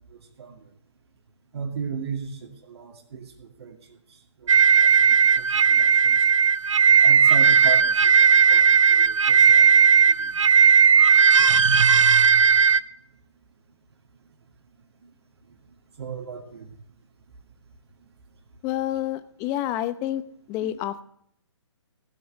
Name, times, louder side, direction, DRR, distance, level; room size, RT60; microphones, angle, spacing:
voice 1, 0.1-0.7 1.5-6.3 7.0-10.3 15.0-15.1 16.0-16.7 20.6-20.7, right 6 dB, 60° right, 2 dB, 2.3 m, -37 dB
sound 1, 4.5-12.8, right 6 dB, 85° right, 0.7 m, -16 dB
voice 2, 18.6-20.2 20.5-21.0, left 13 dB, 20° left, 13 dB, 0.8 m, -28 dB
16.0 x 7.8 x 6.5 m, 0.66 s
hypercardioid pair, 145°, 16 cm